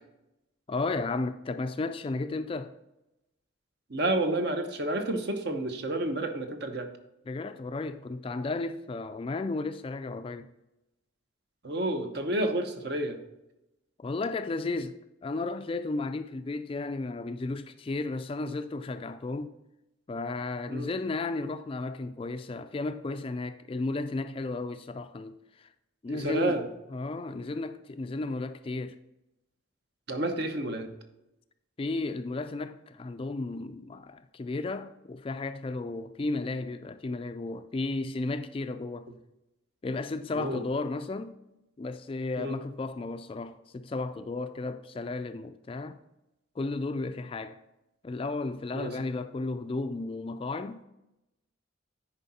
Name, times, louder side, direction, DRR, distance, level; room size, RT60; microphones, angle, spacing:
voice 1, 0.7-2.7 7.3-10.5 14.0-19.5 20.1-25.7 26.0-26.6 26.9-29.0 31.8-39.1 39.8-41.3 41.8-46.0 46.6-47.6 48.0-50.8, left 3 dB, 30° left, 0.3 m, -34 dB
voice 2, 3.9-6.9 11.6-13.2 20.7-20.9 26.1-26.7 30.1-30.9 40.3-40.6 42.4-42.6 48.7-48.9, right 1 dB, 55° right, 0.9 m, -30 dB
10.0 x 4.9 x 4.2 m
head